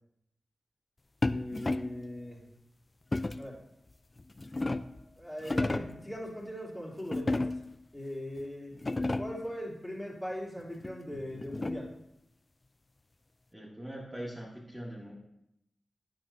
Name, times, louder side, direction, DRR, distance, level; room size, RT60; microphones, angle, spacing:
sound 1, 1.2-2.0 3.1-3.6 4.2-5.0 5.4-6.0 7.1-7.8 8.4-8.5 8.7-9.5 10.8-12.0, left 2 dB, 35° left, 0.4 m, -33 dB
voice 1, 1.3-2.4 3.4-3.6 5.2-7.5 7.9-8.7 9.2-11.9, equal, 15° left, -5 dB, 3.0 m, -40 dB
voice 2, 13.5-15.1, equal, 5° right, -7 dB, 2.1 m, -42 dB
9.1 x 7.0 x 2.7 m, 0.80 s
cardioid pair, 50°, 0 cm